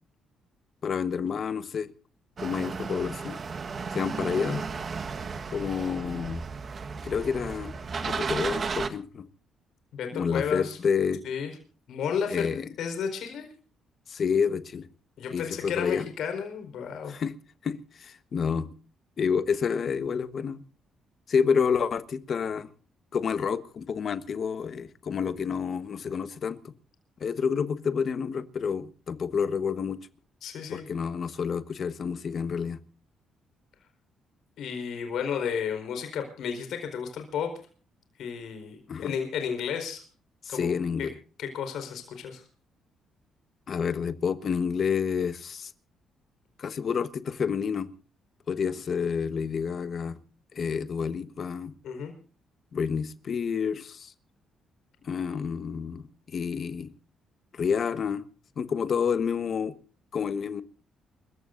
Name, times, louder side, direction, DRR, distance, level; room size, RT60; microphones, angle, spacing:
voice 1, 0.8-1.9 2.4-3.4 3.9-4.6 5.5-6.4 7.0-7.7 8.0-9.3 10.1-11.2 12.3-12.7 14.1-14.9 15.3-16.0 17.1-17.3 17.6-18.7 19.2-20.6 21.3-22.7 23.1-26.7 27.2-30.0 30.7-32.8 38.9-39.2 40.4-41.1 43.7-45.7 46.6-47.9 48.5-50.2 50.5-51.7 52.7-54.1 55.0-56.9 57.5-58.2 58.6-59.7 60.1-60.6, left 6 dB, 50° left, 1.3 m, -29 dB
sound 1, 2.4-8.9, right 5 dB, 45° right, 1.4 m, -34 dB
voice 2, 9.9-10.8 11.2-11.5 11.9-12.5 12.8-13.5 15.2-17.1 30.4-30.9 34.6-37.5 38.2-40.0 40.5-40.7 41.0-41.1 41.4-42.4 51.8-52.1, left 7 dB, 75° left, 4.6 m, -32 dB
28.5 x 15.0 x 2.6 m
cardioid pair, 90°, 0 cm